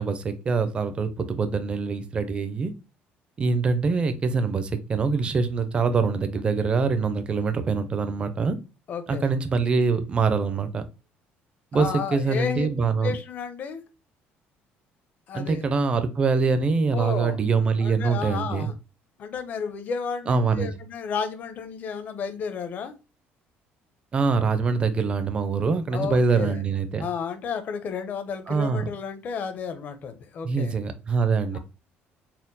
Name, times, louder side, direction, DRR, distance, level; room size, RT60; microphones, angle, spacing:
voice 1, 0.0-2.7 3.4-8.6 9.1-10.8 11.7-13.1 15.3-18.7 20.3-20.8 24.1-27.1 28.5-28.9 30.4-31.6, right 4 dB, 25° right, 0.5 m, -24 dB
voice 2, 8.9-9.3 11.7-12.7 13.0-13.8 15.3-15.7 16.9-17.4 17.8-18.7 19.2-22.9 25.9-26.6 27.0-30.8, left 6 dB, 45° left, 0.7 m, -32 dB
4.2 x 2.1 x 3.9 m
cardioid pair, 150°, 4 cm